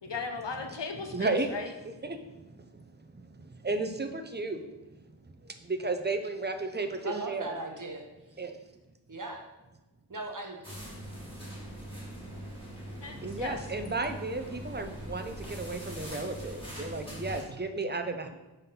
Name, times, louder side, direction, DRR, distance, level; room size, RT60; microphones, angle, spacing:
voice 1, 0.0-1.7 13.0-13.6, left 4 dB, 90° left, 4 dB, 0.9 m, -37 dB
voice 2, 1.1-1.5 1.8-4.6 5.4-7.6 8.4-8.6 13.2-18.3, right 3 dB, 25° right, 6 dB, 0.7 m, -34 dB
voice 3, 7.0-8.0 9.1-9.4 10.1-10.6 18.2-18.3, right 2 dB, 50° right, 1 dB, 1.2 m, -38 dB
sound 1, 10.6-17.4, right 1 dB, 10° left, 2.4 m, -42 dB
5.5 x 4.1 x 5.7 m, 1.1 s
wide cardioid pair, 40°, 42 cm